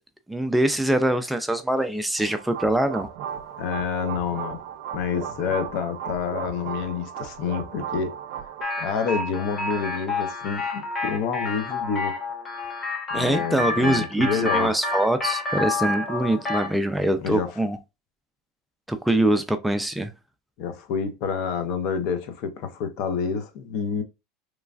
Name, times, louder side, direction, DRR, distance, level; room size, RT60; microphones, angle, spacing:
voice 1, 0.3-3.1 13.1-17.8 18.9-20.1, right 1 dB, 5° right, 0.3 m, -23 dB
sound 1, 2.2-8.6, right 9 dB, 65° right, 0.5 m, -36 dB
voice 2, 3.6-4.6 4.9-8.1 8.8-12.2 13.1-14.7 17.2-17.5 20.6-24.0, left 6 dB, 60° left, 0.6 m, -28 dB
sound 2, 8.6-16.8, left 3 dB, 20° left, 0.8 m, -29 dB
3.1 x 2.3 x 2.3 m
supercardioid pair, 130°, 0 cm